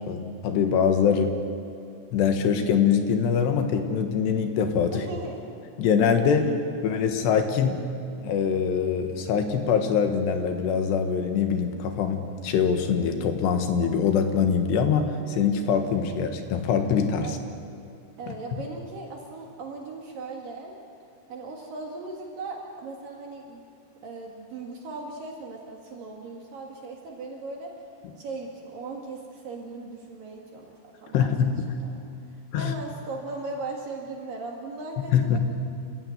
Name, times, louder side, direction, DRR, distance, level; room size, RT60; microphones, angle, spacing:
voice 1, 0.1-1.4 2.1-5.0 5.8-6.5 6.8-7.8 8.2-17.4 31.1-31.7 32.5-32.7 35.1-35.4, left 7 dB, 75° left, 6 dB, 3.5 m, -23 dB
voice 2, 4.9-5.5 6.5-6.6 17.2-17.4 18.2-20.7 21.3-23.6 24.0-27.7 28.2-31.5 31.8-32.0 32.3-35.4, right 3 dB, 60° right, 1 dB, 3.3 m, -38 dB
28.0 x 16.0 x 9.2 m, 2.4 s
omnidirectional pair, 5.1 m